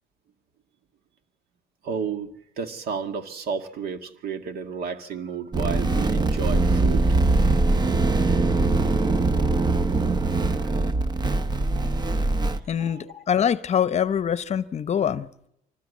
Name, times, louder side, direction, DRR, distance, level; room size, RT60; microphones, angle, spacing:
voice 1, 1.8-2.3 2.6-7.1 11.7-11.8 12.8-13.1, right 6 dB, 65° right, 2.1 m, -32 dB
sound 1, 5.5-12.6, right 2 dB, 25° right, 0.9 m, -22 dB
voice 2, 12.7-15.3, left 8 dB, 40° left, 0.8 m, -24 dB
24.5 x 18.5 x 8.4 m
cardioid pair, 110°, 17 cm